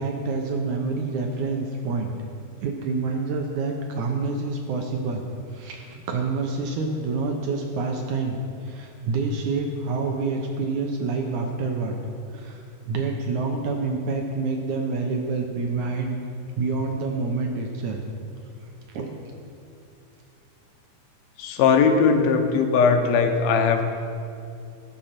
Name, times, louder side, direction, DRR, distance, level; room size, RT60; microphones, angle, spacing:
voice 1, 0.0-2.1 2.6-5.2 5.5-12.0 12.3-16.2 16.6-18.0 18.9-19.2, right 3 dB, 70° right, 2 dB, 1.9 m, -27 dB
voice 2, 21.4-23.8, left 5 dB, 85° left, 5 dB, 2.8 m, -19 dB
17.5 x 6.5 x 5.8 m, 2.5 s
omnidirectional pair, 4.2 m